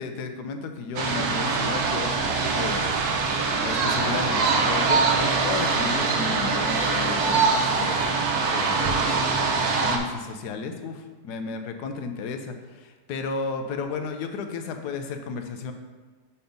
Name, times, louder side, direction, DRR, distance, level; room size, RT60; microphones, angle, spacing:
voice 1, 0.0-2.1 2.4-2.9 3.6-15.7, left 5 dB, 80° left, 6 dB, 1.2 m, -33 dB
sound 1, 1.0-10.0, right 4 dB, 70° right, 1.2 m, -23 dB
5.4 x 4.3 x 5.2 m, 1.3 s
omnidirectional pair, 1.7 m